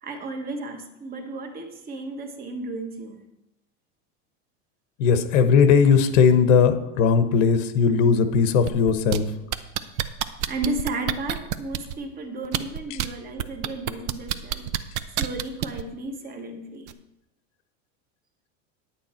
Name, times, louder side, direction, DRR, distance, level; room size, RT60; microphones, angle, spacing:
voice 1, 0.0-3.2 10.5-14.7 15.1-16.9, right 2 dB, 25° right, 5 dB, 1.2 m, -33 dB
voice 2, 5.0-9.3, left 6 dB, 85° left, 9 dB, 1.1 m, -18 dB
sound 1, 8.7-9.2 9.5-11.9 12.4-13.1 13.4-15.8 16.9-17.0, right 11 dB, 70° right, 0.8 m, -27 dB
10.0 x 8.8 x 4.3 m, 0.92 s
supercardioid pair, 140°, 37 cm